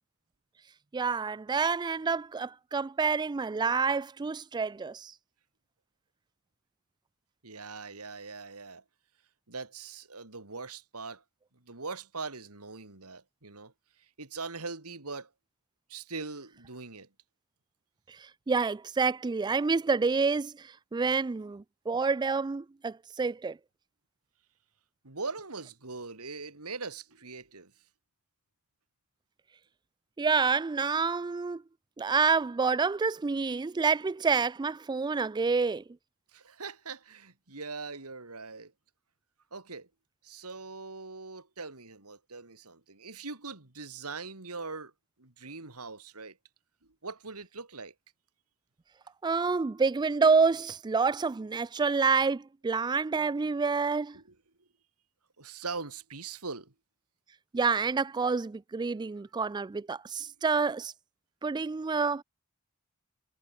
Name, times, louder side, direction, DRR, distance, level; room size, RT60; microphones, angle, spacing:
voice 1, 0.9-5.1 18.1-23.6 30.2-31.6 32.0-35.8 49.2-54.2 57.5-60.9 61.4-62.2, right 4 dB, 20° right, 0.3 m, -28 dB
voice 2, 7.4-8.8 9.5-11.2 11.5-15.3 15.9-17.1 25.0-27.7 36.3-38.7 39.5-39.9 40.2-44.9 45.2-46.4 47.0-47.9 54.1-54.7 55.4-56.7 60.3-60.4, right 4 dB, 80° right, 3.1 m, -41 dB
head